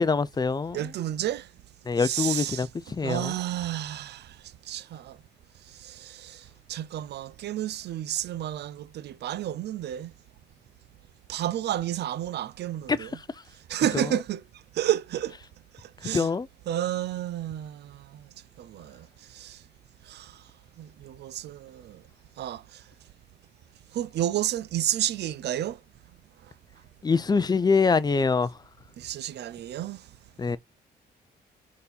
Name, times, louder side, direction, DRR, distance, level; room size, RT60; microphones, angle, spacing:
voice 1, 0.0-0.9 1.9-3.4 12.9-13.3 13.9-14.1 16.1-16.5 27.0-28.6 30.4-30.6, left 4 dB, 20° left, 0.6 m, -25 dB
voice 2, 0.7-1.5 2.0-2.7 3.0-4.3 4.7-5.2 5.8-6.4 6.7-10.1 11.3-13.1 13.7-14.4 14.7-15.3 15.8-16.3 16.7-18.0 18.6-19.1 19.3-19.6 20.1-20.3 20.8-22.0 22.4-22.6 23.9-25.8 29.0-30.0 30.5-30.6, right 12 dB, 70° right, 0.5 m, -31 dB
4.3 x 4.2 x 5.2 m
cardioid pair, 95°, 18 cm